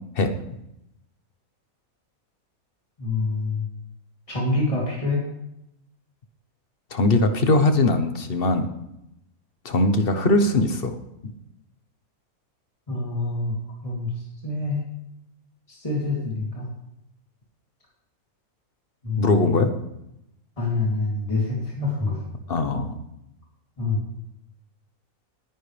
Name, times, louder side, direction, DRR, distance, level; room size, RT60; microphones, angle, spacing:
voice 1, 3.0-3.6 4.3-5.3 12.9-13.5 13.8-14.1 14.4-14.8 15.7-16.7 19.0-19.3 20.6-22.2 23.8-24.0, left 3 dB, 25° left, -5 dB, 3.2 m, -26 dB
voice 2, 6.9-8.7 9.6-10.9 19.2-19.7 22.5-23.0, left 2 dB, 45° left, 8 dB, 1.2 m, -20 dB
19.5 x 10.5 x 3.4 m, 0.85 s
omnidirectional pair, 1.5 m